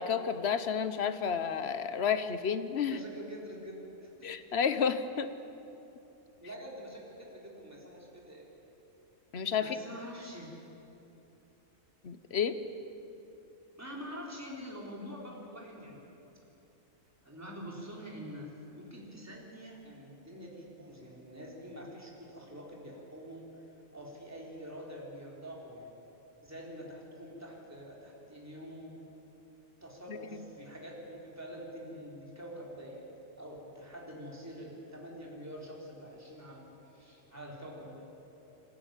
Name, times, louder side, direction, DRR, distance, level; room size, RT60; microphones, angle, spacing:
voice 1, 0.0-3.0 4.2-5.3 9.3-9.8 12.0-12.6 30.1-30.5, left 7 dB, 55° left, 11 dB, 1.1 m, -31 dB
voice 2, 2.9-4.3 6.4-8.5 9.6-10.6 13.8-16.1 17.2-23.6 23.9-26.0 26.4-29.0 29.8-33.1 33.4-38.1, equal, 10° right, -3 dB, 3.7 m, -46 dB
26.5 x 13.0 x 9.0 m, 3.0 s
omnidirectional pair, 1.4 m